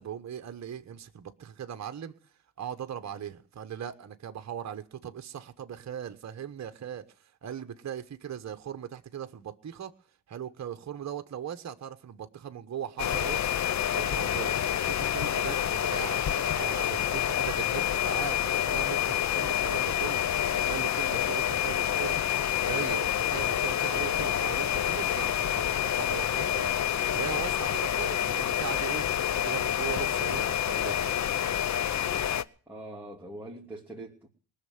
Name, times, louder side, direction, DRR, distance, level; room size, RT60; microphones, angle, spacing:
voice 1, 0.0-2.1 2.6-7.0 7.4-9.9 10.3-13.4 13.9-14.5 14.9-22.2 22.6-26.7 27.1-29.0 29.4-31.3, right 9 dB, 40° right, 9 dB, 1.2 m, -39 dB
sound 1, 13.0-32.4, left 10 dB, 40° left, 0.8 m, -28 dB
voice 2, 32.7-34.3, right 1 dB, 5° right, -3 dB, 2.9 m, -42 dB
19.5 x 6.7 x 9.5 m, 0.43 s
supercardioid pair, 75°, 43 cm